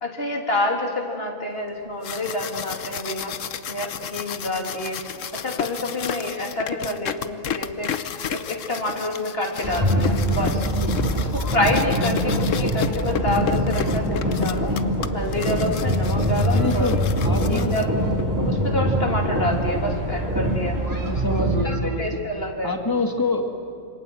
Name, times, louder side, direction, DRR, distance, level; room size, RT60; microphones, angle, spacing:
voice 1, 0.0-7.9 8.3-10.7 11.1-14.7 15.1-16.9 17.4-17.9 18.5-20.8 21.6-22.8, left 1 dB, 50° left, 1 dB, 3.5 m, -27 dB
sound 1, 1.8-18.2, left 8 dB, 75° left, 1.2 m, -33 dB
sound 2, 9.6-21.6, equal, 15° right, 3.1 m, -23 dB
voice 2, 16.5-17.8 19.8-20.1 21.0-22.2 22.6-23.5, left 2 dB, 15° left, 4 dB, 2.1 m, -27 dB
27.5 x 24.5 x 7.8 m, 2.6 s
omnidirectional pair, 1.3 m